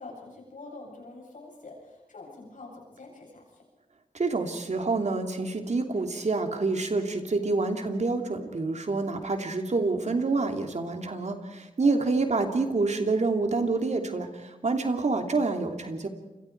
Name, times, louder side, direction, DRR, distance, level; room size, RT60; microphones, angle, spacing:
voice 1, 0.0-3.6 11.8-12.2, left 3 dB, 75° left, -1 dB, 8.0 m, -46 dB
voice 2, 4.1-16.1, right 3 dB, 60° right, 5 dB, 3.0 m, -27 dB
28.5 x 23.5 x 4.7 m, 1.1 s
cardioid pair, 50°, 13 cm